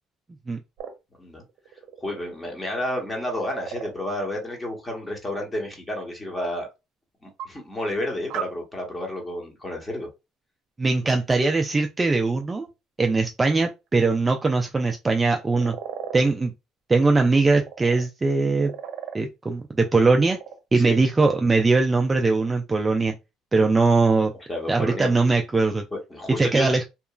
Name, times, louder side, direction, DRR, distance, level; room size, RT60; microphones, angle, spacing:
sound 1, 0.8-0.9 1.5-2.2 3.0-3.9 6.0-6.1 7.4-7.5 8.3-8.4 15.3-16.2 17.4-18.0 18.4-19.2 20.0-20.6, right 9 dB, 70° right, 0.6 m, -36 dB
voice 1, 2.0-6.7 7.2-10.1 11.0-11.2 20.7-21.0 24.5-25.1 25.9-26.7, left 1 dB, 15° left, 1.0 m, -31 dB
voice 2, 10.8-12.7 13.0-15.8 16.1-16.5 16.9-18.7 19.1-20.4 20.7-23.1 23.5-24.3 24.7-25.9 26.4-26.8, right 3 dB, 20° right, 0.3 m, -21 dB
2.9 x 2.3 x 2.3 m
cardioid pair, 120°, 0 cm